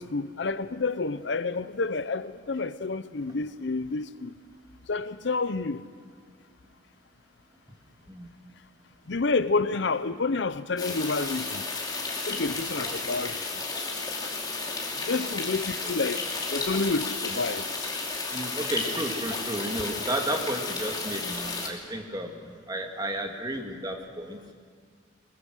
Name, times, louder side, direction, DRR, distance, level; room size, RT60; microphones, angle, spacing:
voice 1, 0.0-4.3 4.9-5.8 9.1-11.6 12.3-13.4 15.1-16.2 16.5-17.6, left 3 dB, 70° left, 0.7 m, -29 dB
sound 1, 10.8-21.7, left 3 dB, 20° left, 2.8 m, -33 dB
voice 2, 18.3-22.4 22.7-24.4, right 1 dB, 20° right, 2.2 m, -33 dB
22.0 x 21.0 x 6.4 m
head